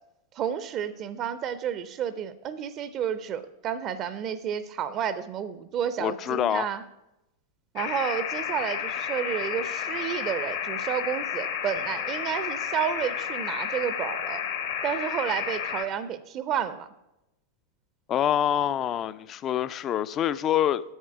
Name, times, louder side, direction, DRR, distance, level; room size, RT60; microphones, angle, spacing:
voice 1, 0.3-6.8 7.7-14.4 14.8-16.9, right 8 dB, 35° right, 14 dB, 0.4 m, -31 dB
voice 2, 6.0-6.7 18.1-20.8, left 10 dB, 30° left, 16 dB, 0.3 m, -26 dB
sound 1, 7.8-15.8, left 8 dB, 55° left, 0.9 m, -31 dB
8.2 x 7.3 x 4.7 m, 0.91 s
figure-of-eight pair, 90°, 0 cm